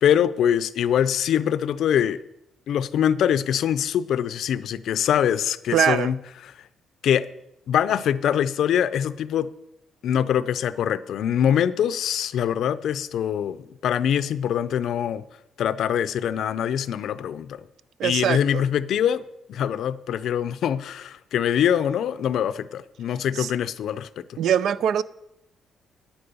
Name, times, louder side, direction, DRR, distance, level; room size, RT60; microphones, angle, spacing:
voice 1, 0.0-2.2 2.7-6.2 7.0-7.3 7.7-9.5 10.0-15.3 15.6-17.7 18.0-19.2 19.5-24.4, left 9 dB, 75° left, 0.5 m, -23 dB
voice 2, 5.7-6.1 18.0-18.6 23.3-23.5 24.4-25.0, right 9 dB, 75° right, 0.4 m, -22 dB
10.0 x 9.5 x 5.4 m
cardioid pair, 90°, 0 cm